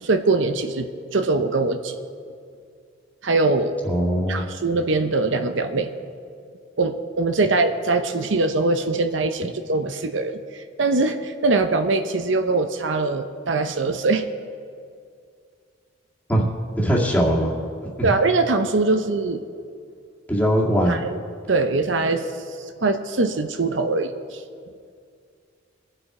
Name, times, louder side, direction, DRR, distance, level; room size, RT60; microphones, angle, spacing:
voice 1, 0.0-2.0 3.2-3.8 4.3-5.9 6.8-14.2 18.0-19.4 20.9-21.2 21.5-22.3 22.8-24.4, right 3 dB, 70° right, 8 dB, 0.8 m, -22 dB
voice 2, 3.8-4.4 16.3-16.5 16.8-17.6 18.0-18.1 20.3-21.1, equal, 10° left, -3 dB, 2.1 m, -20 dB
23.5 x 7.9 x 4.8 m, 2.3 s
head